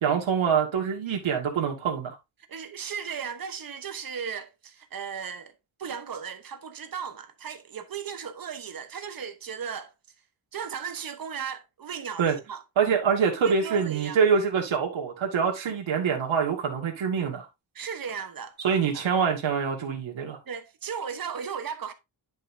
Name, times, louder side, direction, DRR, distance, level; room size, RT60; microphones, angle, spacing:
voice 1, 0.0-2.2 12.2-12.4 12.8-17.5 18.6-20.4, right 6 dB, 85° right, 2.1 m, -25 dB
voice 2, 2.5-5.5 5.8-9.9 10.5-12.6 13.4-14.2 17.7-18.6 18.9-19.1 20.5-21.9, right 7 dB, 50° right, 1.1 m, -36 dB
10.5 x 5.5 x 2.7 m
wide cardioid pair, 165°, 46 cm